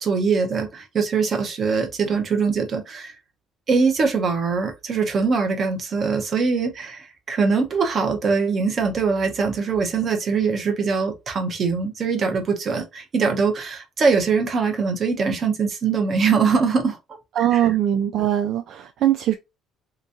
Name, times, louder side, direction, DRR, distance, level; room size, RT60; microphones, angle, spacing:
voice 1, 0.0-3.1 3.7-17.7, right 5 dB, 30° right, 0.8 m, -22 dB
voice 2, 17.4-19.3, right 11 dB, 55° right, 0.3 m, -21 dB
3.5 x 3.0 x 2.6 m
cardioid pair, 170°, 0 cm